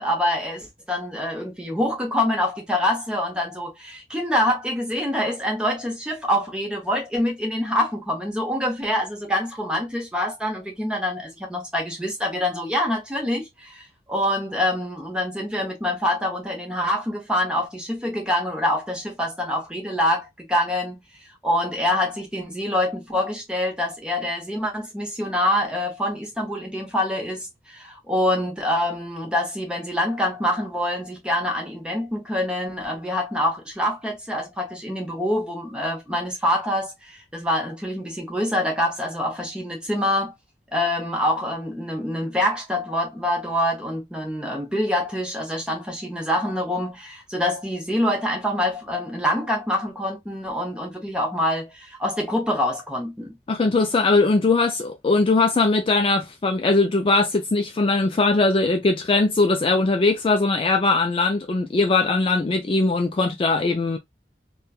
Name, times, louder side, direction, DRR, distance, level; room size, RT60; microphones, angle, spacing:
voice 1, 0.0-21.0 21.4-40.3 40.7-53.3, left 1 dB, 5° right, 0.9 m, -25 dB
voice 2, 53.5-64.0, left 3 dB, 30° left, 0.3 m, -20 dB
3.1 x 2.2 x 2.3 m
head